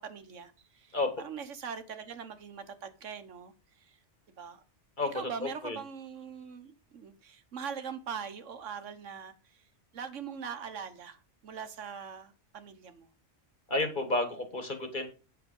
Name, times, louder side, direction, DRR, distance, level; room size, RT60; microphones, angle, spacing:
voice 1, 0.0-3.5 3.8-4.0 4.3-4.6 5.1-9.6 9.9-13.1, right 7 dB, 85° right, 1.4 m, -42 dB
voice 2, 5.4-5.8 13.7-15.1, left 2 dB, 40° left, 2.1 m, -31 dB
8.7 x 6.6 x 5.2 m
omnidirectional pair, 1.2 m